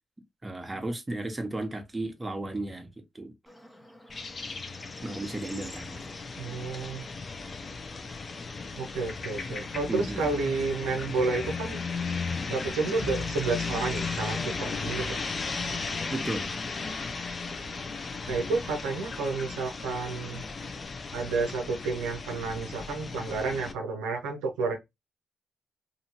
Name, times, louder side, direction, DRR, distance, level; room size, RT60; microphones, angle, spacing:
voice 1, 0.4-3.3 5.0-6.1 9.9-10.2 16.1-16.5, right 2 dB, 25° right, 0.9 m, -34 dB
Bird / Insect, 3.5-20.9, left 1 dB, 25° left, 0.9 m, -51 dB
sound 1, 4.1-23.7, left 4 dB, 50° left, 0.6 m, -36 dB
voice 2, 6.4-7.0 8.7-11.8 12.5-15.2 18.3-20.4 21.1-24.8, right 4 dB, 90° right, 0.5 m, -30 dB
2.7 x 2.6 x 2.7 m
supercardioid pair, 45°, 0 cm